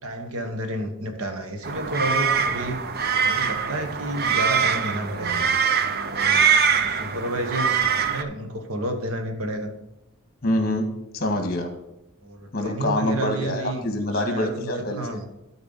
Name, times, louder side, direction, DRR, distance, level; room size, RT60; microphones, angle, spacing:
voice 1, 0.0-2.8 3.2-5.5 5.9-6.5 6.8-9.7 12.2-13.9 14.1-15.2, right 1 dB, 70° right, 6 dB, 1.3 m, -31 dB
sound 1, 1.6-8.2, right 6 dB, 45° right, 0.6 m, -23 dB
voice 2, 10.4-10.9 11.1-11.7 12.5-15.2, left 1 dB, 40° left, 5 dB, 1.7 m, -25 dB
12.5 x 4.7 x 5.5 m, 0.92 s
head